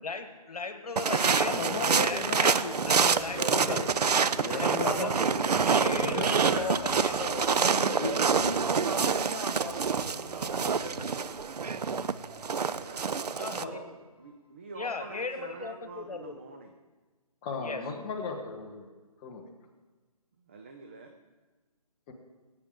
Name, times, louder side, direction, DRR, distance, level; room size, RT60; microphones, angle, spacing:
voice 1, 0.0-1.8 2.0-2.6 2.9-3.8 4.5-5.1 5.5-7.7 13.4-13.8 14.7-16.4 17.6-17.8, left 4 dB, 70° left, 8 dB, 1.4 m, -37 dB
sound 1, 1.0-13.6, right 5 dB, 85° right, 0.5 m, -27 dB
voice 2, 1.4-6.3 6.7-6.8 8.0-8.1 13.6-13.7 17.4-18.9 19.2-19.5 22.1-22.2, left 4 dB, 15° left, 2 dB, 0.8 m, -36 dB
sound 2, 1.5-14.5, left 3 dB, 35° left, 1.6 m, -50 dB
voice 3, 4.8-5.5 6.1-6.7 7.6-11.1, right 2 dB, 65° right, 3 dB, 2.0 m, -36 dB
voice 4, 12.7-13.9 14.2-16.8 20.4-21.1, right 4 dB, 20° right, 4 dB, 0.4 m, -46 dB
18.5 x 8.9 x 3.5 m, 1.3 s
figure-of-eight pair, 160°, 20 cm